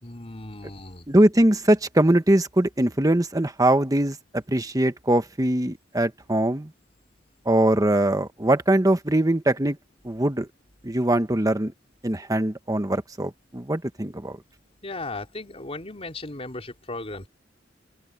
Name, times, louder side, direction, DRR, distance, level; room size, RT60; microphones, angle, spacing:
voice 1, 0.0-1.1 14.8-17.3, left 2 dB, 35° left, 3.5 m, -36 dB
voice 2, 1.1-6.7 7.4-9.8 10.0-10.5 10.8-11.7 12.0-14.4, right 1 dB, 20° right, 1.2 m, -22 dB
open air
head